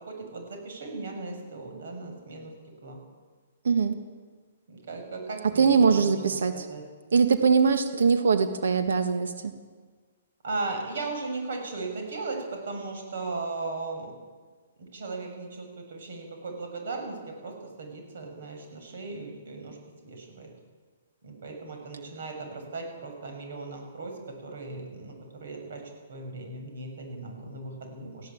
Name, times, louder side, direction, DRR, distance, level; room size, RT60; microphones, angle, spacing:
voice 1, 0.0-2.5 2.8-3.0 4.7-6.8 10.4-14.1 14.8-19.8 20.0-20.5 21.2-25.8 26.1-28.3, right 3 dB, 65° right, 3 dB, 7.4 m, -37 dB
voice 2, 3.6-4.0 5.6-6.6 7.1-9.5, right 5 dB, 80° right, 8 dB, 1.7 m, -22 dB
18.5 x 16.5 x 8.7 m, 1.5 s
hypercardioid pair, 155°, 0 cm